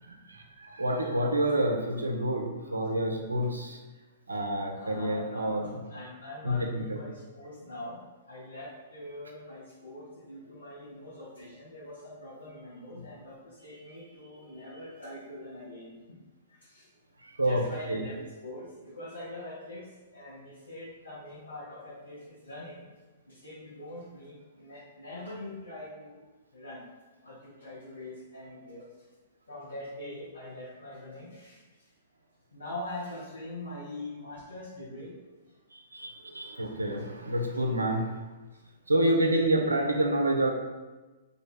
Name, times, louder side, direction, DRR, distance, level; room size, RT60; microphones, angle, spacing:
voice 1, 0.0-3.8 4.3-5.7 6.4-7.0 12.9-13.0 17.2-17.6 17.9-18.0 35.7-38.2 38.9-40.5, right 1 dB, 85° right, 3 dB, 0.6 m, -28 dB
voice 2, 4.7-8.0 8.3-16.2 16.5-16.9 17.4-19.9 20.1-22.8 23.3-26.2 26.5-26.8 27.2-28.9 29.5-31.9 32.5-35.2, left 1 dB, 80° left, -8 dB, 1.0 m, -43 dB
3.0 x 2.6 x 4.2 m, 1.2 s
figure-of-eight pair, 110°, 0 cm